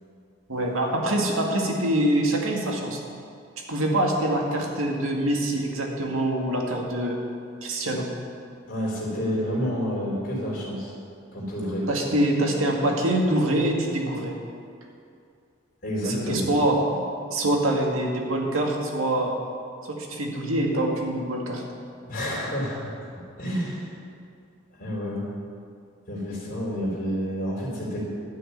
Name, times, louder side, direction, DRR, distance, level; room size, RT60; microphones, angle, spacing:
voice 1, 0.5-3.0 3.7-7.2 7.6-8.1 11.9-14.3 16.0-17.0 17.3-19.3 19.9-21.6, right 1 dB, 85° right, 0 dB, 1.9 m, -25 dB
voice 2, 8.7-10.9 11.3-11.9 15.8-16.5 22.0-23.9 24.8-25.2 26.1-28.0, equal, 45° left, -4 dB, 3.6 m, -29 dB
12.0 x 6.4 x 9.5 m, 2.4 s
head